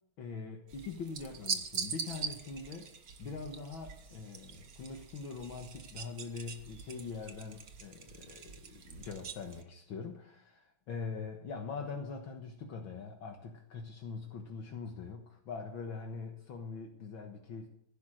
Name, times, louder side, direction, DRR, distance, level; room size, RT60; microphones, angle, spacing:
voice 1, 0.2-2.9 3.2-17.7, left 4 dB, 65° left, 2 dB, 2.1 m, -43 dB
sound 1, 0.7-9.6, right 6 dB, 50° right, 1.5 m, -43 dB
16.0 x 10.5 x 6.5 m, 0.70 s
omnidirectional pair, 2.4 m